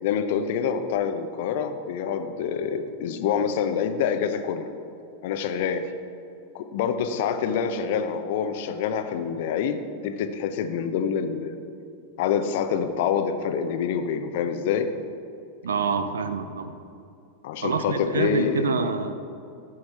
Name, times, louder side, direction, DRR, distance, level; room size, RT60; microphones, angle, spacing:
voice 1, 0.0-4.7 5.2-5.9 6.5-11.6 12.2-14.9 17.4-18.9, left 7 dB, 50° left, 8 dB, 0.7 m, -26 dB
voice 2, 15.6-16.7 17.6-19.1, right 5 dB, 65° right, 10 dB, 0.6 m, -26 dB
15.0 x 6.3 x 4.3 m, 2.5 s
figure-of-eight pair, 90°, 0 cm